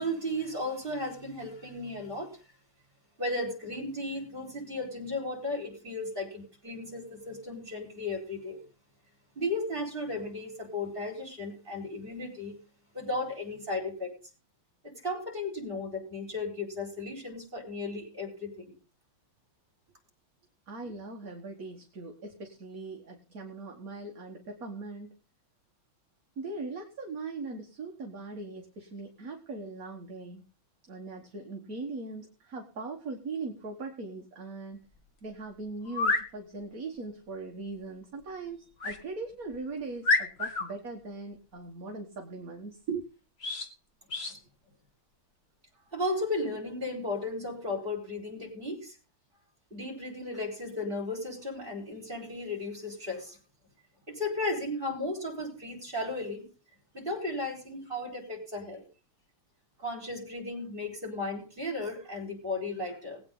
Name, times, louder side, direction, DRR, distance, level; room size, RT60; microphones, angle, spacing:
voice 1, 0.0-2.3 3.2-8.6 9.3-12.5 12.9-14.1 14.8-18.7 45.9-48.9 49.7-53.4 54.1-56.4 56.9-58.8 59.8-63.2, left 2 dB, 25° right, -1 dB, 5.0 m, -35 dB
voice 2, 20.7-25.2 26.4-30.4 30.9-34.8 35.2-43.1, right 3 dB, 45° right, 1 dB, 1.9 m, -40 dB
sound 1, 34.9-35.0 35.8-36.3 38.8-39.0 39.5-39.6 40.0-40.7 43.4-43.7 44.1-44.4, left 3 dB, 30° left, 1.6 m, -28 dB
20.5 x 8.8 x 3.9 m, 0.34 s
omnidirectional pair, 2.3 m